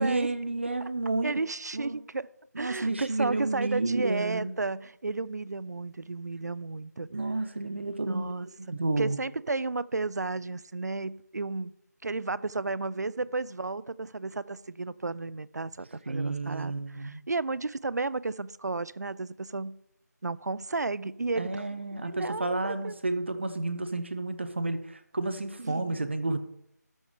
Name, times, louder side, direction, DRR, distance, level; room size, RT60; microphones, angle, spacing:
voice 1, 0.0-1.4 1.7-2.0 2.5-4.5 7.1-8.3 8.7-9.2 16.1-17.2 21.4-26.4, right 2 dB, 40° right, 11 dB, 0.8 m, -31 dB
voice 2, 1.2-2.3 2.6-7.1 8.1-11.7 12.0-16.7 17.0-19.8 20.2-21.6 22.0-23.0 25.6-26.1, right 3 dB, 70° right, 20 dB, 0.5 m, -33 dB
12.5 x 5.6 x 4.9 m, 0.78 s
figure-of-eight pair, 175°, 10 cm